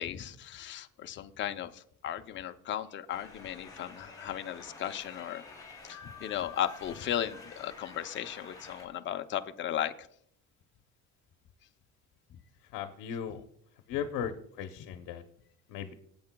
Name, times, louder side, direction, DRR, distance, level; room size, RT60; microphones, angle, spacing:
voice 1, 0.0-5.4 5.8-9.9 14.8-14.9, left 11 dB, 40° left, 7 dB, 0.6 m, -36 dB
sound 1, 3.1-8.9, left 3 dB, 10° left, 3.0 m, -49 dB
voice 2, 12.7-13.4 13.9-14.3 14.6-15.2 15.7-15.9, left 8 dB, 75° left, 7 dB, 0.9 m, -36 dB
19.0 x 8.7 x 2.2 m, 0.68 s
cardioid pair, 140°, 31 cm